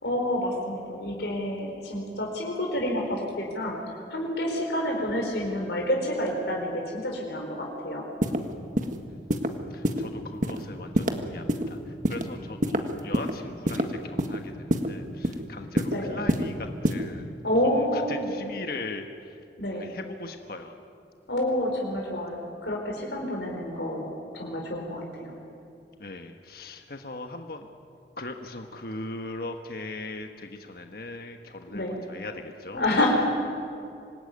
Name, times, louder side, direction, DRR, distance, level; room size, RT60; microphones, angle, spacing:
voice 1, 0.0-3.8 4.1-8.0 15.9-16.1 17.4-18.3 19.6-19.9 21.3-25.3 31.7-32.0 32.7-33.1, left 1 dB, 70° left, 0 dB, 4.6 m, -28 dB
sound 1, 8.2-8.4 8.8-8.9 9.3-9.5 9.8-10.0 10.4-10.6 10.9-11.1 11.5-11.6 12.0-12.2 12.6-13.3 13.7-13.8 14.2-14.4 14.7-14.9 15.2-15.4 15.8-15.9 16.3-16.4 16.8-17.0, right 1 dB, 45° right, 1.7 m, -24 dB
voice 2, 9.7-19.4 19.7-20.8 26.0-27.7 28.2-32.8, left 2 dB, 55° left, 5 dB, 1.3 m, -39 dB
26.0 x 20.0 x 9.6 m, 2.6 s
head